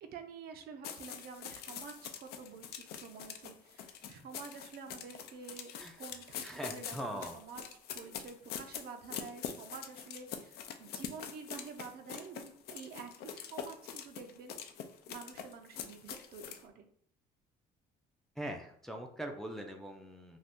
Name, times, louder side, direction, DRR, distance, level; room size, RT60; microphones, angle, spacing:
voice 1, 0.0-7.0 7.3-7.6 7.9-14.6 15.1-16.9, right 5 dB, 65° right, 6 dB, 0.5 m, -49 dB
sound 1, 0.8-16.6, left 8 dB, 70° left, 0.4 m, -44 dB
voice 2, 6.4-7.4 18.4-20.4, right 1 dB, ahead, 3 dB, 0.4 m, -42 dB
2.6 x 2.4 x 3.5 m, 0.62 s
cardioid pair, 110°, 17 cm